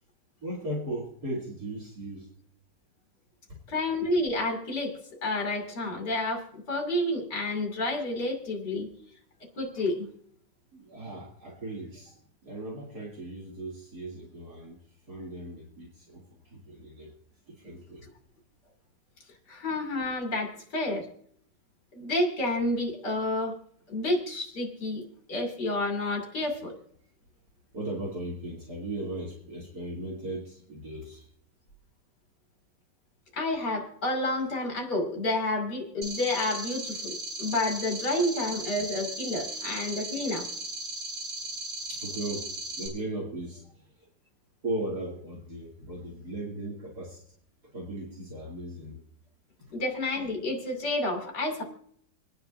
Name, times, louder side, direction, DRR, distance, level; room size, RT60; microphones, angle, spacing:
voice 1, 0.4-2.3 3.5-3.6 10.7-12.2 12.4-14.8 15.1-16.2 16.5-17.1 17.5-18.1 27.7-31.2 37.9-38.3 39.3-39.8 41.9-43.7 44.6-47.2 47.7-49.0 49.6-49.7, right 1 dB, 55° right, -4 dB, 3.1 m, -37 dB
voice 2, 3.7-8.9 9.6-10.1 19.5-21.1 21.9-23.6 23.9-25.0 25.3-26.8 33.3-40.5 49.7-51.6, left 2 dB, 65° left, 1 dB, 3.4 m, -30 dB
sound 1, 36.0-42.9, right 2 dB, 75° right, 6.2 m, -37 dB
27.5 x 9.6 x 2.7 m, 0.62 s
omnidirectional pair, 2.0 m